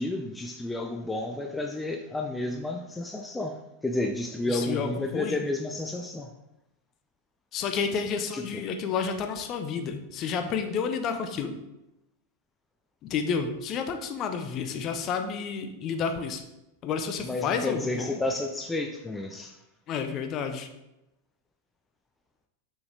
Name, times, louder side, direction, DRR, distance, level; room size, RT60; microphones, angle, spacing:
voice 1, 0.0-3.6 3.8-6.3 8.3-8.6 17.2-19.6, left 2 dB, 10° left, 3 dB, 0.5 m, -31 dB
voice 2, 4.5-5.4 7.5-11.5 13.0-16.4 16.8-18.2 19.9-20.7, left 6 dB, 35° left, 6 dB, 0.8 m, -30 dB
6.3 x 6.0 x 3.4 m, 0.92 s
figure-of-eight pair, 90°, 0 cm